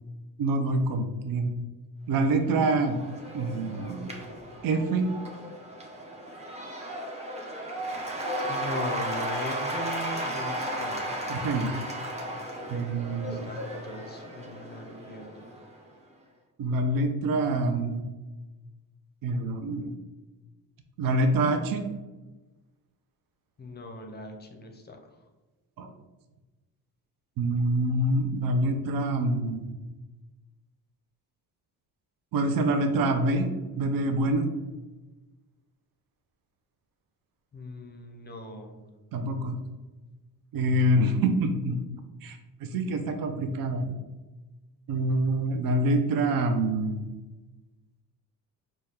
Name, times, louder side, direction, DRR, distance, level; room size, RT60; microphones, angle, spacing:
voice 1, 0.4-1.5 2.1-3.0 3.3-4.1 4.6-5.1 11.3-11.7 12.7-13.5 16.6-18.0 19.2-19.9 21.0-21.8 25.8-25.9 27.4-29.7 32.3-33.5 33.7-34.5 39.1-39.5 40.5-41.8 42.2-43.9 44.9-47.1, right 2 dB, 60° right, 6 dB, 0.5 m, -26 dB
Cheering / Applause / Crowd, 2.4-15.8, right 1 dB, 15° right, 0.7 m, -35 dB
voice 2, 8.4-11.2 13.1-15.5 23.6-25.0 37.5-38.8, left 1 dB, 25° left, 4 dB, 0.5 m, -39 dB
4.1 x 2.3 x 3.3 m, 1.2 s
cardioid pair, 100°, 38 cm